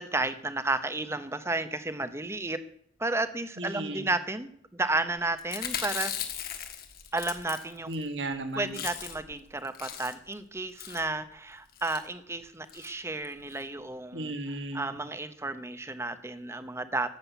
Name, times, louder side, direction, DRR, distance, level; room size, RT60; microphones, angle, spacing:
voice 1, 0.0-2.6 3.0-6.1 7.1-7.9 8.6-14.3 14.7-17.2, right 2 dB, 15° right, 12 dB, 0.8 m, -32 dB
voice 2, 3.6-4.1 7.9-8.8 14.1-14.9, right 2 dB, 65° right, 7 dB, 1.7 m, -35 dB
Chewing mastication, 5.4-8.0 8.3-8.4 8.6-9.3 9.6-10.3 10.8-11.1 11.7-12.0 12.7-12.9 13.2-13.3 13.5-13.6, left 9 dB, 50° left, 1.5 m, -37 dB
12.5 x 7.6 x 8.2 m, 0.66 s
head